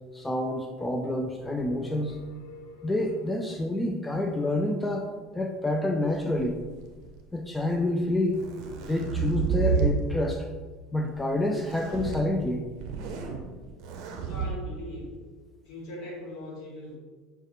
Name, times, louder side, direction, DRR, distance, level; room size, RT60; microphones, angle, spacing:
voice 1, 0.1-2.2 2.8-6.6 7.3-8.4 8.8-10.5 10.9-12.6, left 1 dB, 10° left, 3 dB, 0.3 m, -28 dB
sound 1, 1.3-3.8, left 2 dB, 75° left, 0.5 m, -47 dB
sound 2, 6.4-7.2 8.1-10.0 11.5-12.2 12.7-13.4 13.8-14.5, right 7 dB, 55° right, 0.6 m, -30 dB
voice 2, 14.2-15.2 15.6-17.0, left 1 dB, 60° left, -3 dB, 1.4 m, -40 dB
6.1 x 2.2 x 3.0 m, 1.4 s
figure-of-eight pair, 70°, 0 cm